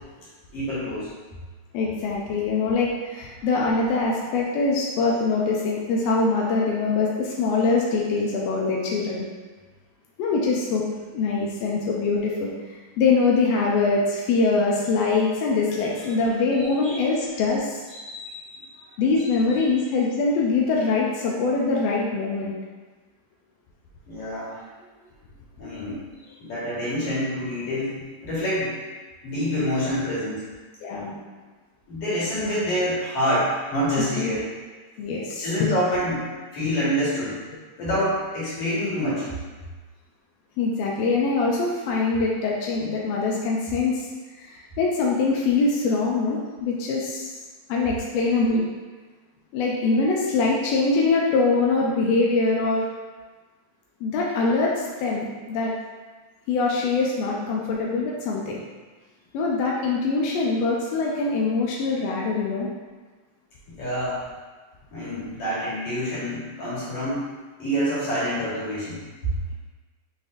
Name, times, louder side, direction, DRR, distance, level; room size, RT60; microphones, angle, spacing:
voice 1, 0.5-1.1 16.8-16.9 17.9-18.7 24.1-24.6 25.6-28.7 29.2-30.4 31.9-34.4 35.4-37.4 37.8-39.3 63.7-64.2 64.9-67.3 67.6-69.0, equal, 55° left, -9 dB, 2.5 m, -27 dB
voice 2, 1.7-9.2 10.2-10.8 11.1-17.8 19.0-22.5 30.8-31.1 34.1-34.3 35.0-35.7 36.6-36.7 40.6-44.1 44.4-47.3 47.7-48.6 49.5-52.8 54.0-55.7 56.5-58.6 59.3-62.7, left 3 dB, 80° left, -3 dB, 1.5 m, -23 dB
5.0 x 4.1 x 2.5 m, 1.3 s
omnidirectional pair, 3.5 m